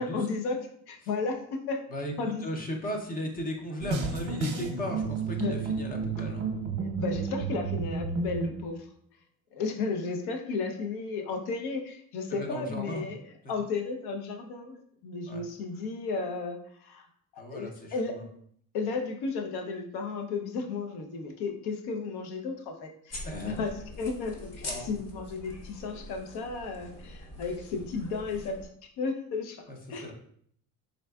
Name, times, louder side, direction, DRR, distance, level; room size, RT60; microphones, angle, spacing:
voice 1, 0.0-1.8 2.2-2.4 5.4-5.5 7.0-8.8 9.5-13.2 13.5-17.1 17.5-18.2 18.7-23.7 24.0-28.6 29.0-29.6 29.9-30.1, left 4 dB, 80° left, 4 dB, 0.7 m, -33 dB
voice 2, 1.9-6.4 12.3-13.1 13.4-13.5 15.3-15.4 17.4-18.2 23.2-23.7 24.6-24.9 29.7-29.8 30.0-30.1, equal, 25° left, 3 dB, 0.5 m, -36 dB
sound 1, 3.8-8.6, right 4 dB, 50° right, 0.7 m, -31 dB
sound 2, 23.1-28.7, left 1 dB, 40° left, 0.9 m, -43 dB
3.9 x 3.4 x 2.2 m, 0.64 s
cardioid pair, 150°, 38 cm